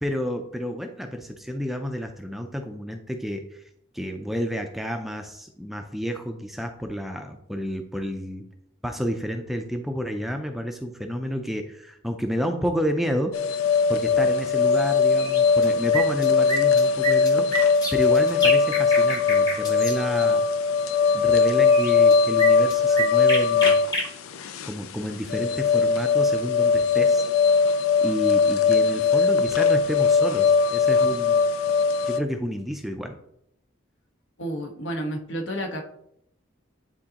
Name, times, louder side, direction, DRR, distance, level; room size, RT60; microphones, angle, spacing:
voice 1, 0.0-3.6 3.9-8.5 8.8-13.3 13.9-20.4 21.1-23.8 24.6-27.2 28.0-31.4 32.0-33.2, equal, ahead, 4 dB, 0.4 m, -30 dB
sound 1, 13.3-32.2, left 5 dB, 90° left, 0.5 m, -20 dB
sound 2, 14.7-14.8 15.2-15.7 15.9-20.0 21.4-21.5 21.7-24.1, right 1 dB, 20° left, 1.0 m, -28 dB
voice 2, 34.4-35.8, equal, 65° left, 3 dB, 1.1 m, -30 dB
9.9 x 3.9 x 2.9 m, 0.75 s
head